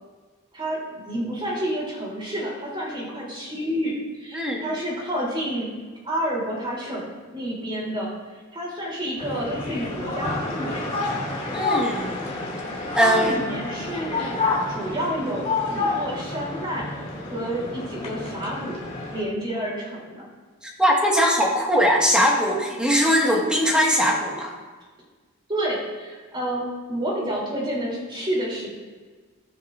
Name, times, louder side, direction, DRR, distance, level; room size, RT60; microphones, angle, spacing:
voice 1, 0.5-5.7 6.0-10.9 12.9-14.4 14.7-16.9 17.2-18.8 19.1-20.2 25.5-28.7, equal, 25° right, -4 dB, 3.5 m, -29 dB
voice 2, 4.3-4.7 11.5-12.1 12.9-13.4 20.6-24.5, equal, 5° right, -2 dB, 1.7 m, -20 dB
sound 1, 9.2-19.2, left 3 dB, 30° left, 2.6 m, -29 dB
20.5 x 6.9 x 2.6 m, 1.4 s
head